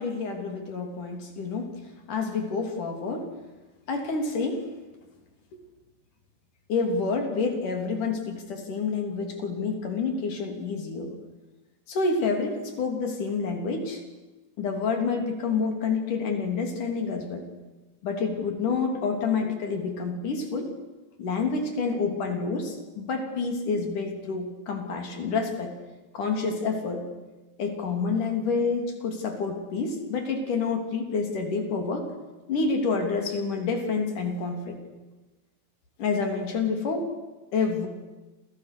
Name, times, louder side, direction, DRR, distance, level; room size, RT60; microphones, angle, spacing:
voice 1, 0.0-1.8 2.1-3.3 3.9-4.7 6.7-11.1 11.9-14.0 14.6-17.5 18.0-20.7 21.2-25.7 26.1-27.1 27.6-32.1 32.5-34.8 36.0-37.1 37.5-37.9, left 4 dB, 45° left, 4 dB, 4.4 m, -28 dB
30.0 x 27.0 x 6.8 m, 1.1 s
omnidirectional pair, 5.2 m